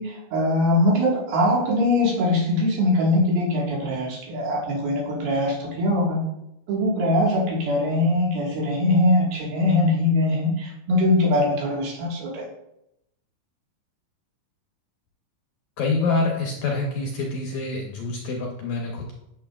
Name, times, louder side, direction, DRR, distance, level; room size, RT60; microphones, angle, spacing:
voice 1, 0.0-6.2 6.7-12.4, left 1 dB, 80° right, -3 dB, 3.6 m, -22 dB
voice 2, 15.8-19.1, left 3 dB, 70° left, -1 dB, 1.9 m, -26 dB
10.0 x 7.3 x 2.4 m, 0.84 s
omnidirectional pair, 4.2 m